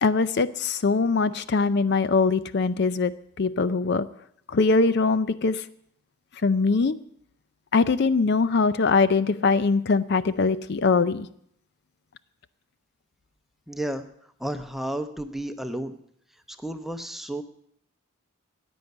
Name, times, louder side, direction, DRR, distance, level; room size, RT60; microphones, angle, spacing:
voice 1, 0.0-4.1 4.5-5.7 6.4-7.0 7.7-11.3, left 4 dB, 55° left, 14 dB, 0.5 m, -22 dB
voice 2, 13.7-14.1 14.4-15.9 16.5-17.4, right 1 dB, ahead, 7 dB, 0.8 m, -32 dB
15.0 x 9.4 x 7.9 m, 0.69 s
head